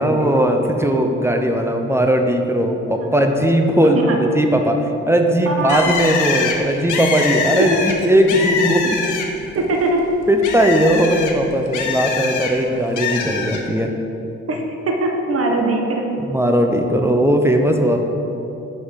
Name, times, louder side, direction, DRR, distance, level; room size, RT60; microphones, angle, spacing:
voice 1, 0.0-9.0 10.3-13.9 16.2-18.0, equal, 10° right, 3 dB, 0.7 m, -18 dB
voice 2, 5.5-5.9 7.7-7.8 9.5-10.1 14.5-16.1, right 2 dB, 50° right, 2 dB, 1.3 m, -21 dB
Bird, 5.7-9.5 9.9-12.5 13.0-13.6, left 5 dB, 80° left, 1.0 m, -24 dB
6.3 x 5.5 x 6.4 m, 3.0 s
cardioid pair, 90°, 30 cm